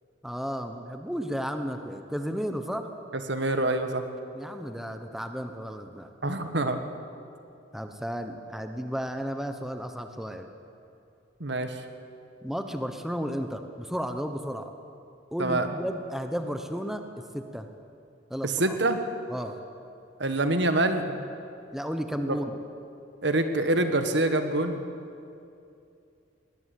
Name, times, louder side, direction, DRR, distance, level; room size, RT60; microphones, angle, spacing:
voice 1, 0.2-2.9 4.3-6.1 7.7-10.5 12.4-14.7 15.3-17.7 18.3-18.8 19.3-19.6 21.7-22.5, equal, ahead, 6 dB, 1.0 m, -33 dB
voice 2, 3.3-4.0 6.2-6.8 11.4-11.8 15.4-15.7 18.4-19.0 20.2-21.1 22.3-22.4 23.2-24.8, right 2 dB, 60° right, 8 dB, 1.5 m, -25 dB
20.5 x 19.5 x 8.4 m, 2.6 s
head